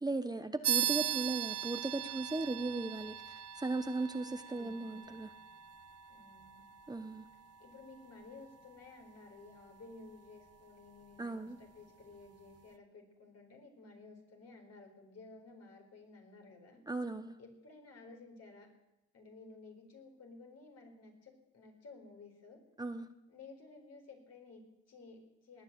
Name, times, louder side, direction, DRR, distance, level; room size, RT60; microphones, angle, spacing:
voice 1, 0.0-5.3 6.9-7.3 11.2-11.6 16.9-17.4 22.8-23.1, right 2 dB, 15° right, 9 dB, 0.8 m, -37 dB
sound 1, 0.6-10.6, right 10 dB, 55° right, 1.0 m, -40 dB
voice 2, 4.5-5.0 6.1-6.7 7.6-16.8 17.4-18.7 19.1-22.6 23.3-25.6, left 3 dB, 55° left, 3 dB, 4.5 m, -55 dB
19.0 x 9.5 x 7.6 m, 0.94 s
cardioid pair, 90°, 30 cm